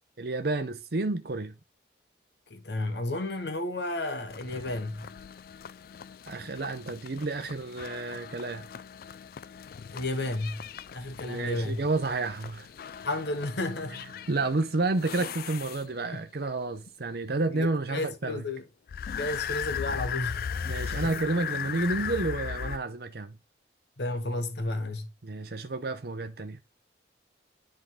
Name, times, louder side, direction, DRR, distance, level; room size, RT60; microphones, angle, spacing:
voice 1, 0.2-1.6 6.3-8.7 11.2-12.7 14.3-18.4 20.6-23.4 25.2-26.6, right 2 dB, 55° right, 0.7 m, -30 dB
voice 2, 2.5-5.1 9.9-10.6 10.9-11.8 13.0-14.0 16.1-16.2 17.5-18.7 19.1-20.5 21.0-21.2 24.0-25.1, left 2 dB, 65° left, 1.1 m, -32 dB
sound 1, 4.3-16.2 18.9-22.8, left 7 dB, 50° left, 0.3 m, -38 dB
10.0 x 3.8 x 3.6 m
head